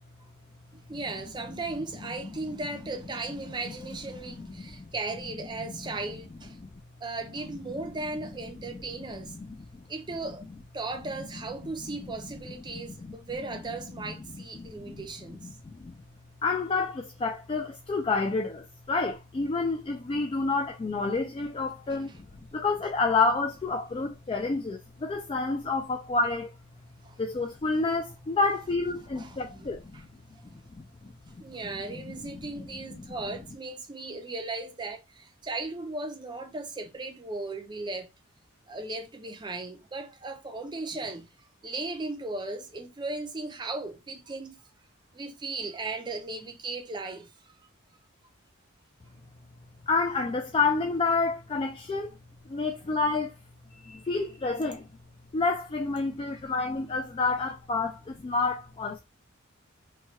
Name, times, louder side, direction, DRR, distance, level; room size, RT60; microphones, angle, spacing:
voice 1, 0.7-6.6 7.0-9.4 9.9-10.4 10.7-15.5 27.0-27.2 29.2-30.0 31.4-38.1 38.7-41.3 41.6-44.6 45.1-47.3, right 3 dB, 20° right, 0.5 m, -37 dB
voice 2, 4.2-4.9 5.6-6.0 6.6-6.7 8.7-8.8 9.2-9.6 11.9-12.0 12.7-13.2 14.0-14.1 14.6-16.0 16.4-22.1 22.5-26.5 27.2-30.1 30.8-31.1 31.9-32.7 33.0-33.1 49.9-52.1 52.5-53.3 53.7-54.8 55.3-59.0, left 3 dB, 25° left, 0.3 m, -29 dB
3.1 x 2.3 x 2.7 m
head